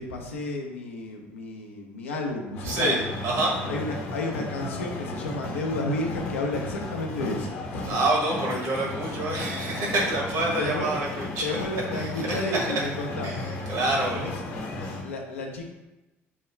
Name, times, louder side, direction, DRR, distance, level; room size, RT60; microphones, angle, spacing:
voice 1, 0.0-3.0 3.7-7.9 10.6-10.9 11.4-13.3 14.1-14.3 15.0-15.6, left 2 dB, 85° left, 1 dB, 0.6 m, -32 dB
sound 1, 2.5-15.0, left 2 dB, 60° left, 0.9 m, -34 dB
voice 2, 2.6-3.0 3.2-3.5 7.9-11.5 11.9-12.8 13.2-14.3, right 2 dB, 65° right, -2 dB, 1.3 m, -27 dB
5.4 x 2.3 x 3.1 m, 1.0 s
hypercardioid pair, 55°, 7 cm